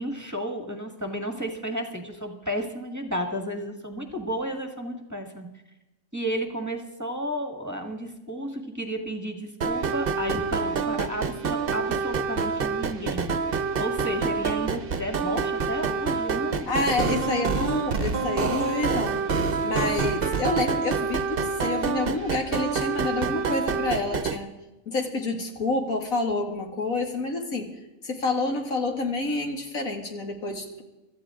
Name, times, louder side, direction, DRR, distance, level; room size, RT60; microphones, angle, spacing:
voice 1, 0.0-5.5 6.1-13.4 13.8-17.2 19.8-20.0, equal, 15° right, 3 dB, 1.7 m, -32 dB
sound 1, 9.6-24.4, right 5 dB, 45° right, 1.0 m, -27 dB
voice 2, 16.6-19.2 19.6-24.5 24.9-27.8 28.0-30.8, left 2 dB, 90° left, 2 dB, 2.7 m, -28 dB
25.5 x 14.0 x 3.7 m, 1.0 s
omnidirectional pair, 1.4 m